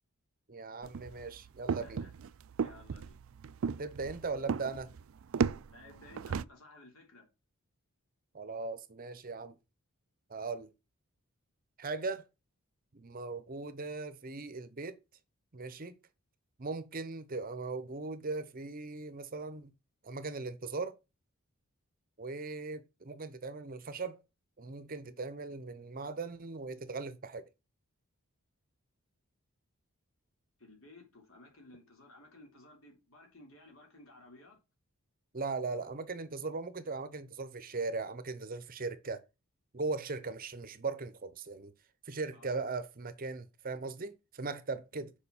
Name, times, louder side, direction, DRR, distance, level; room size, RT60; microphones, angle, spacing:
voice 1, 0.5-2.1 3.8-4.9 8.3-9.5 10.3-10.7 11.8-12.2 12.9-15.0 15.5-15.9 16.6-19.7 20.0-21.0 22.2-24.2 24.6-27.5 35.3-39.2 39.7-41.7 42.0-45.1, right 3 dB, 40° right, 0.7 m, -39 dB
sound 1, 0.8-6.4, right 6 dB, 65° right, 0.4 m, -35 dB
voice 2, 2.6-3.2 5.7-7.3 30.6-34.6 42.3-42.5, left 2 dB, 65° left, 3.4 m, -56 dB
6.9 x 5.1 x 7.1 m
head